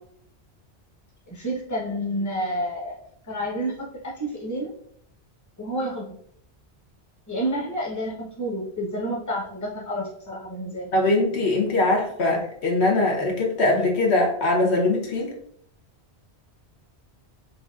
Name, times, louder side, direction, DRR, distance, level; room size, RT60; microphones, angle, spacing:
voice 1, 1.3-3.0 3.2-4.7 5.6-6.2 7.3-10.9, equal, 15° left, -4 dB, 1.0 m, -29 dB
voice 2, 10.9-15.3, left 2 dB, 75° left, 0 dB, 1.1 m, -22 dB
6.6 x 2.6 x 2.4 m, 0.67 s
omnidirectional pair, 1.1 m